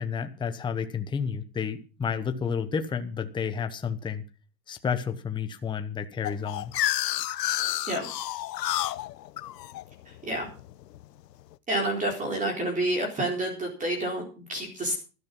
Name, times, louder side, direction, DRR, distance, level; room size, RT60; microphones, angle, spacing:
voice 1, 0.0-4.2 4.7-6.7, left 6 dB, 10° left, 0.9 m, -31 dB
sound 1, 6.2-11.0, left 14 dB, 85° left, 1.0 m, -30 dB
voice 2, 10.1-10.5 11.7-14.9, right 1 dB, 15° right, 4.1 m, -29 dB
12.5 x 12.0 x 5.4 m
supercardioid pair, 140°, 47 cm